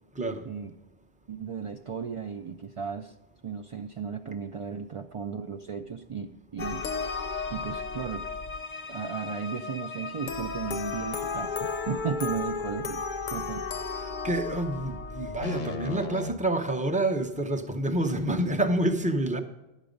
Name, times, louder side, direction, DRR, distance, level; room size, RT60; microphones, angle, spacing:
voice 1, 0.1-0.5 14.0-19.4, right 1 dB, 10° right, 0.6 m, -28 dB
voice 2, 1.3-3.1 3.4-6.9 7.5-8.3 8.9-13.1 13.3-13.7, right 6 dB, 55° right, 0.3 m, -35 dB
sound 1, 6.6-16.3, left 4 dB, 55° left, 0.8 m, -34 dB
11.0 x 8.2 x 5.2 m
omnidirectional pair, 1.1 m